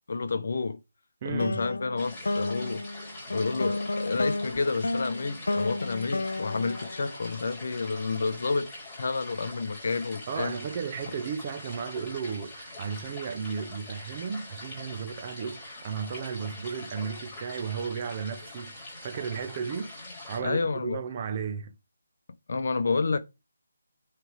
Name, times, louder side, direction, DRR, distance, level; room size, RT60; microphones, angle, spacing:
voice 1, 0.1-0.8 1.2-2.8 3.3-8.7 8.9-10.5 20.4-21.0 22.5-23.2, left 4 dB, 55° left, 0.9 m, -29 dB
voice 2, 1.2-1.6 10.3-19.9 20.3-21.7, right 6 dB, 25° right, 0.6 m, -34 dB
sound 1, 1.4-7.8, left 2 dB, 85° left, 0.6 m, -32 dB
sound 2, 2.0-20.4, left 1 dB, 15° left, 3.9 m, -44 dB
9.5 x 3.3 x 3.5 m
figure-of-eight pair, 170°, 0 cm